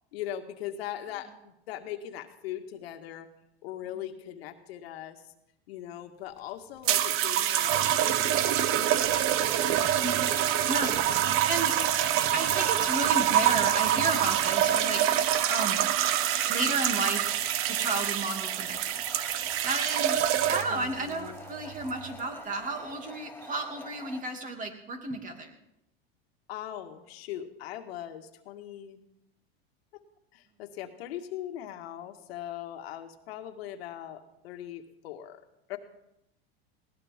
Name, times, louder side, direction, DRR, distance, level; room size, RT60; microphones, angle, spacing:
voice 1, 0.1-3.3 3.6-5.3 5.7-9.7 20.7-21.4 26.5-29.0 30.3-35.4 35.7-35.8, left 11 dB, 75° left, 5 dB, 1.9 m, -40 dB
sound 1, 6.9-20.9 21.8-22.1, right 11 dB, 45° right, 1.0 m, -26 dB
sound 2, 8.9-24.2, left 2 dB, 5° left, 1.4 m, -47 dB
voice 2, 10.0-11.8 12.3-15.8 16.5-17.3 17.7-19.0 19.6-25.5, right 3 dB, 25° right, 4 dB, 2.7 m, -33 dB
20.0 x 17.5 x 3.7 m, 0.83 s
supercardioid pair, 125°, 31 cm